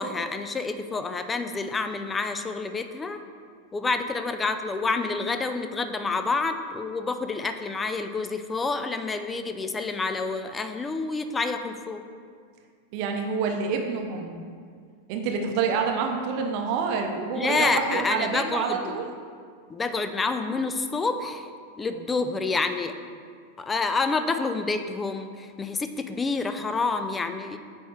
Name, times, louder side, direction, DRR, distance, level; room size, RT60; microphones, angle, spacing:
voice 1, 0.0-3.2 3.7-12.0 17.3-18.9 19.7-21.5 21.8-22.9 23.6-27.6, left 3 dB, 15° left, 8 dB, 0.4 m, -28 dB
voice 2, 12.9-14.3 15.1-19.1, right 5 dB, 45° right, 3 dB, 0.7 m, -27 dB
8.4 x 3.5 x 4.3 m, 2.1 s
figure-of-eight pair, 90°, 0 cm